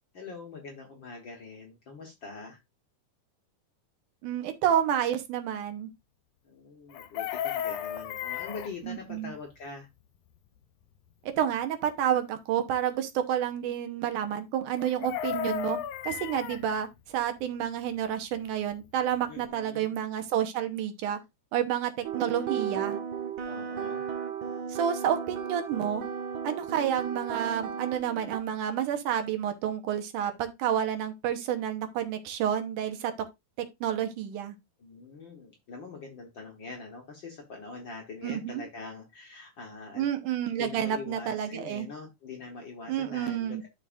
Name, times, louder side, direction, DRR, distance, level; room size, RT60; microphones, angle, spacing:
voice 1, 0.1-2.6 6.4-9.9 19.3-19.9 23.4-24.0 34.8-40.1 40.5-43.7, left 4 dB, 55° left, 1.4 m, -43 dB
voice 2, 4.2-5.9 8.8-9.3 11.4-15.8 16.0-16.9 17.1-21.2 21.5-23.0 24.7-26.0 26.4-33.1 33.6-34.6 38.2-38.6 40.0-41.9 42.9-43.6, right 9 dB, 85° right, 2.5 m, -29 dB
Chicken rooster, 6.9-8.7 14.8-16.6 18.8-18.9 19.2-19.5, left 10 dB, 80° left, 2.1 m, -34 dB
sound 1, 22.0-28.4, right 7 dB, 65° right, 1.3 m, -35 dB
11.5 x 5.1 x 2.5 m
omnidirectional pair, 3.6 m